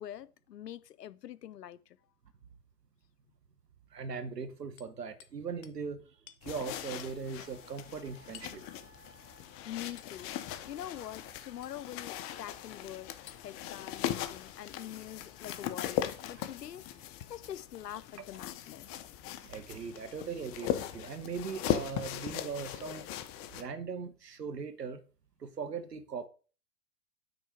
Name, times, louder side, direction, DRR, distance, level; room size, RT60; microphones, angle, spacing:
voice 1, 0.0-2.0 9.6-10.3 10.7-17.0 17.3-18.9, left 11 dB, 85° left, 0.6 m, -44 dB
voice 2, 3.9-6.2 6.4-8.6 19.4-23.1 23.4-25.0 25.4-26.3, right 5 dB, 90° right, 1.2 m, -39 dB
Hammer, 4.8-5.4 5.6-5.8 6.3-6.4 7.0-7.2 8.3-8.6 10.0-10.2 11.6-11.8 13.3-13.4 15.4-15.5 17.0-17.8 18.6-18.7 20.0-20.2 21.1-21.3 22.8-22.9, left 11 dB, 60° left, 1.0 m, -54 dB
sound 1, 6.4-23.6, left 11 dB, 30° left, 0.7 m, -39 dB
Wind instrument woodwind instrument, 6.6-17.5, right 4 dB, 15° right, 2.9 m, -63 dB
9.1 x 3.9 x 4.7 m
hypercardioid pair, 105°, 47 cm